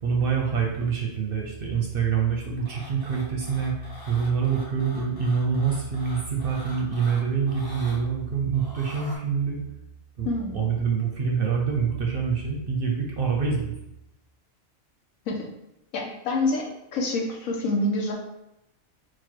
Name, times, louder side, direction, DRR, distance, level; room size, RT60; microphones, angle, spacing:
voice 1, 0.0-9.6 10.2-13.7, right 6 dB, 55° right, 0 dB, 0.7 m, -26 dB
sound 1, 2.7-8.0 8.5-9.2, equal, 25° left, 0.5 m, -44 dB
voice 2, 10.2-10.7 15.3-15.4 15.9-16.6 16.9-18.1, left 2 dB, 90° left, 0 dB, 1.2 m, -26 dB
4.1 x 2.3 x 4.4 m, 0.86 s
omnidirectional pair, 1.4 m